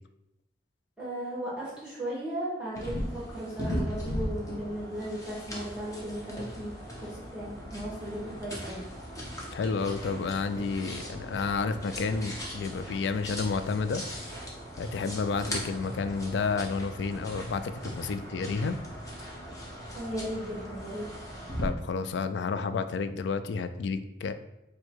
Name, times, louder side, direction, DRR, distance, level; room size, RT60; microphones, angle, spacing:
voice 1, 1.0-8.9 19.9-21.1, equal, 5° right, -8 dB, 1.1 m, -36 dB
sound 1, 2.7-21.7, equal, 20° left, 0.9 m, -38 dB
voice 2, 9.5-14.0 14.8-18.8 21.6-24.3, left 4 dB, 75° left, 11 dB, 0.3 m, -31 dB
4.5 x 2.2 x 4.5 m, 0.90 s
head